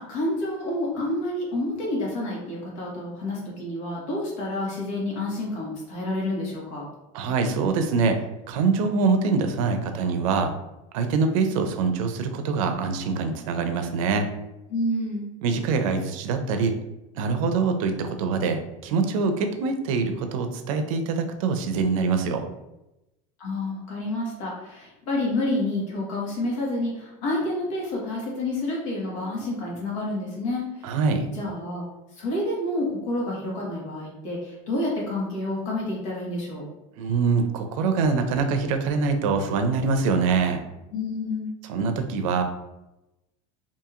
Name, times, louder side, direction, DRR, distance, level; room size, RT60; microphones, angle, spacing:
voice 1, 0.0-6.8 14.7-15.3 23.4-31.0 31.3-31.8 32.1-36.7 40.9-41.5, left 1 dB, 90° left, -4 dB, 1.3 m, -29 dB
voice 2, 7.1-10.5 10.9-14.3 15.4-16.7 17.2-22.5 30.8-31.3 37.0-40.6 41.7-42.4, right 4 dB, 85° right, 6 dB, 0.5 m, -24 dB
2.8 x 2.6 x 2.4 m, 0.94 s
supercardioid pair, 140°, 17 cm